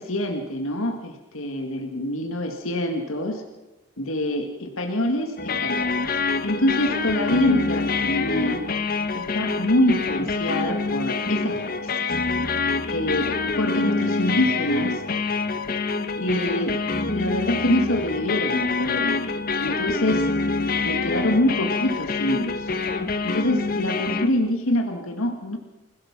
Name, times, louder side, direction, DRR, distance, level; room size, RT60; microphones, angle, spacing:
voice 1, 0.0-3.4 4.0-8.6 9.1-11.9 12.9-15.0 16.2-16.8 17.1-19.3 19.6-20.3 20.8-22.7 23.2-25.6, left 1 dB, 85° left, 4 dB, 1.9 m, -25 dB
sound 1, 5.4-24.3, left 4 dB, 45° left, 1.3 m, -26 dB
27.0 x 17.0 x 6.1 m, 1.0 s
head